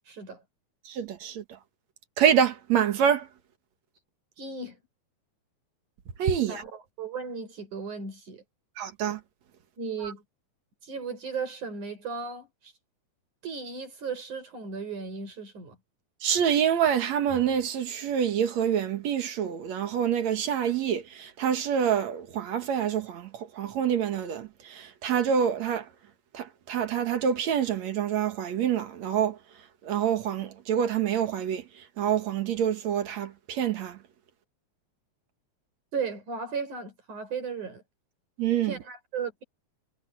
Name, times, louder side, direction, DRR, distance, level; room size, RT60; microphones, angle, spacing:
voice 1, 0.1-0.4 4.4-4.8 6.5-8.4 9.8-10.2 10.8-12.7 13.4-15.8 35.9-37.8 38.6-39.4, right 5 dB, 80° right, 7.9 m, -36 dB
voice 2, 0.9-1.4 2.2-3.2 6.2-6.6 8.8-9.2 16.2-23.3 23.6-24.5 24.8-25.8 26.3-29.3 29.8-31.6 32.0-34.0 38.4-38.7, right 8 dB, 65° right, 2.7 m, -26 dB
omnidirectional pair, 3.4 m